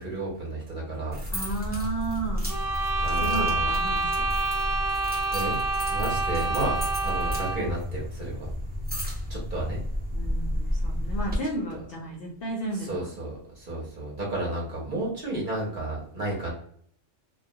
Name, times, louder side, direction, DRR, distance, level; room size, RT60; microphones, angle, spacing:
voice 1, 0.0-1.2 3.0-3.7 5.3-5.6 5.9-8.5 9.3-9.8 12.8-16.5, right 2 dB, 50° right, -4 dB, 0.8 m, -32 dB
sound 1, 1.1-11.4, left 1 dB, 15° right, 0.4 m, -31 dB
voice 2, 1.3-2.5 3.1-4.2 10.1-13.1, right 2 dB, 60° left, -1 dB, 0.7 m, -33 dB
sound 2, 2.5-7.8, right 2 dB, 90° right, 1.0 m, -28 dB
2.2 x 2.1 x 2.7 m, 0.62 s
omnidirectional pair, 1.3 m